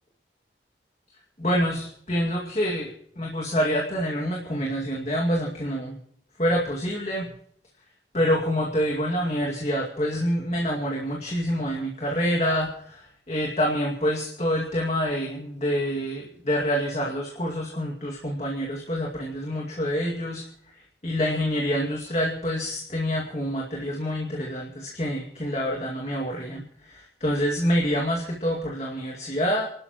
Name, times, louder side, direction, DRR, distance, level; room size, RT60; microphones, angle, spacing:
voice 1, 1.4-6.0 6.4-7.3 8.1-20.4 20.7-29.7, equal, 40° left, -1 dB, 2.2 m, -27 dB
28.5 x 12.5 x 3.0 m, 0.63 s
head